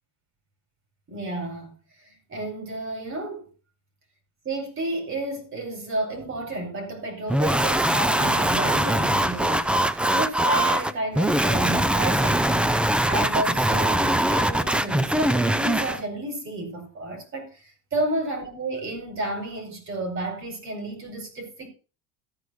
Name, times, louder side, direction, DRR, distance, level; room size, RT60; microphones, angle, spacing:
voice 1, 1.1-1.7 2.1-3.4 4.4-9.7 10.1-12.8 13.1-17.6 17.9-21.7, right 2 dB, 35° right, 4.7 m, -31 dB
sound 1, 7.3-16.0, right 1 dB, 5° right, 0.4 m, -22 dB
14.0 x 4.9 x 6.3 m
cardioid pair, 130°, 35 cm